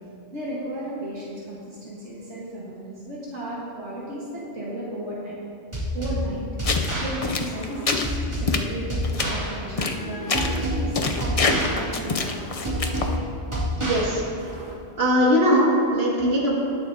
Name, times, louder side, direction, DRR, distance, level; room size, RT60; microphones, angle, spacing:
voice 1, 0.3-5.3 5.9-6.5 7.0-12.4 13.7-13.8, right 1 dB, 85° right, -6 dB, 1.8 m, -34 dB
sound 1, 5.7-14.7, equal, 25° right, 2.2 m, -29 dB
sound 2, 6.6-6.9 7.2-8.1 8.5-8.6 9.0-9.2 9.8-10.0 10.3-10.6 10.9-13.1, left 4 dB, 40° left, 0.6 m, -25 dB
voice 2, 13.8-14.2 15.0-16.5, equal, 65° right, -5 dB, 2.3 m, -20 dB
20.5 x 7.0 x 2.7 m, 2.7 s
omnidirectional pair, 1.2 m